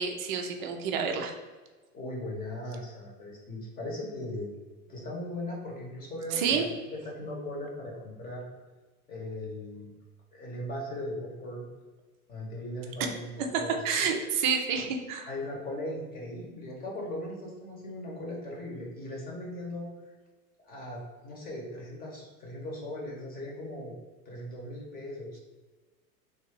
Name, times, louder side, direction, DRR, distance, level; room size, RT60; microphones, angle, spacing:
voice 1, 0.0-1.3 6.3-6.7 13.5-15.3, right 6 dB, 35° right, 4 dB, 0.5 m, -29 dB
voice 2, 1.9-4.5 4.9-6.6 6.9-8.4 9.1-9.9 10.3-11.6 12.3-14.0 15.3-19.9 20.6-24.0 24.2-25.4, left 1 dB, 20° left, -2 dB, 1.0 m, -38 dB
3.3 x 2.7 x 3.7 m, 1.3 s
figure-of-eight pair, 90°, 44 cm